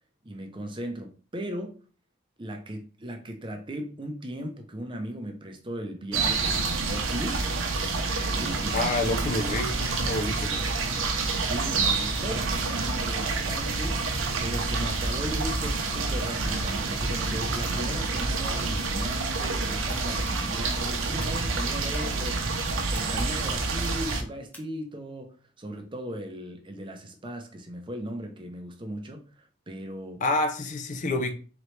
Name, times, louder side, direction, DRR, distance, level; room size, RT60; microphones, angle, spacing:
voice 1, 0.2-1.7 2.4-9.2 11.4-14.0 14.4-22.5 22.9-29.2 29.7-30.2, equal, 25° right, 0.6 m, -37 dB
sound 1, 6.1-24.2, right 3 dB, 85° right, 0.7 m, -28 dB
voice 2, 8.7-10.7 30.2-31.3, left 2 dB, 40° left, 0.5 m, -28 dB
sound 2, 20.2-20.3 20.9-21.3 21.8-22.0 22.9-23.0 23.7-23.9 24.5-24.6, left 1 dB, 10° left, 0.8 m, -47 dB
3.9 x 3.2 x 3.2 m
head